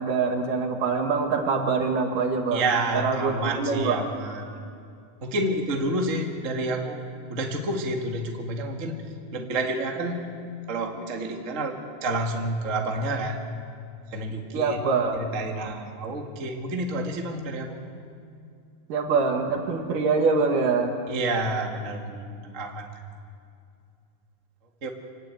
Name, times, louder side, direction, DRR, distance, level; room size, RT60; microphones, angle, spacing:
voice 1, 0.0-2.6 2.9-4.1 14.5-15.2 18.9-21.0, right 4 dB, 60° right, 3 dB, 3.1 m, -24 dB
voice 2, 2.5-4.6 5.2-7.0 7.3-10.2 10.7-11.8 12.0-13.4 14.1-14.8 15.1-17.8 21.1-22.9 24.8-24.9, right 2 dB, 35° right, 2 dB, 1.2 m, -29 dB
26.0 x 18.0 x 9.2 m, 2.4 s
omnidirectional pair, 4.7 m